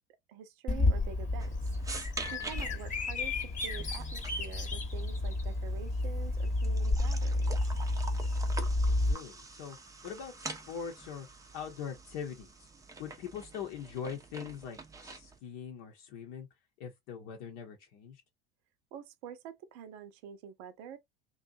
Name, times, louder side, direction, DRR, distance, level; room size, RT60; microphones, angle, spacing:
voice 1, 0.3-1.5 2.3-7.6 18.9-21.0, right 8 dB, 60° right, 0.6 m, -47 dB
Bird vocalization bird call bird song, 0.7-9.1, left 2 dB, 25° left, 1.0 m, -31 dB
sound 1, 1.4-15.4, right 3 dB, 10° right, 0.6 m, -47 dB
voice 2, 8.9-9.8 10.0-11.3 11.5-12.7 13.0-16.5 16.8-18.2, left 7 dB, 55° left, 0.8 m, -42 dB
2.6 x 2.3 x 2.6 m
hypercardioid pair, 75°, 30 cm